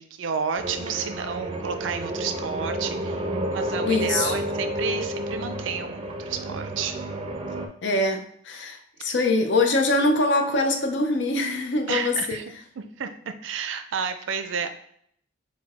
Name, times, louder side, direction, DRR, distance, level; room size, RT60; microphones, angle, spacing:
voice 1, 0.0-3.2 3.5-7.0 11.9-12.4 12.8-14.7, right 6 dB, 90° right, 9 dB, 0.5 m, -31 dB
sound 1, 0.6-7.7, equal, 30° right, 0.4 m, -30 dB
voice 2, 3.8-4.4 7.8-12.4, left 2 dB, 70° left, 4 dB, 0.6 m, -23 dB
4.4 x 2.2 x 4.2 m, 0.67 s
head